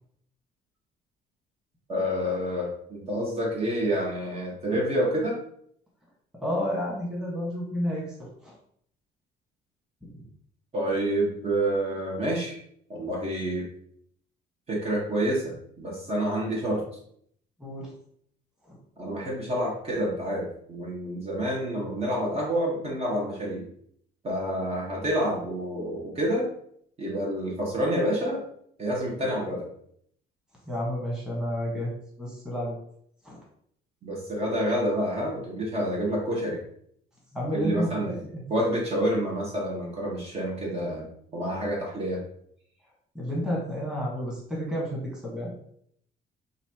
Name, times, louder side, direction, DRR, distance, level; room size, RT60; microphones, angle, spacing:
voice 1, 1.9-5.4 10.7-12.6 12.9-13.7 14.7-16.8 19.0-23.6 24.2-26.5 27.0-28.4 28.8-29.7 34.0-36.6 37.5-38.1 38.5-41.1 41.3-42.2, equal, 35° right, -3 dB, 1.5 m, -28 dB
voice 2, 6.4-8.6 17.6-17.9 18.7-18.8 30.6-31.9 32.2-32.8 33.2-33.4 37.3-38.4 43.1-45.5, equal, 5° right, -4 dB, 1.6 m, -31 dB
5.6 x 2.7 x 3.0 m, 0.66 s
cardioid pair, 110°, 17 cm